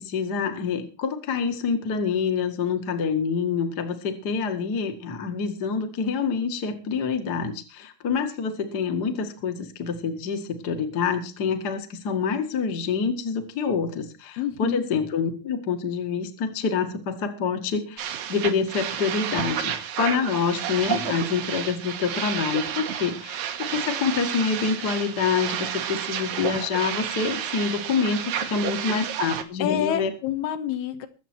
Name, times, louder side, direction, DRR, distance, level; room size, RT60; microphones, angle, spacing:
voice 1, 0.0-30.1, left 5 dB, 40° left, 6 dB, 1.6 m, -27 dB
voice 2, 14.4-14.8 29.6-31.1, left 10 dB, 85° left, 8 dB, 3.2 m, -27 dB
sound 1, 18.0-29.4, right 9 dB, 70° right, 2.9 m, -31 dB
22.0 x 8.1 x 4.5 m, 0.34 s
omnidirectional pair, 4.5 m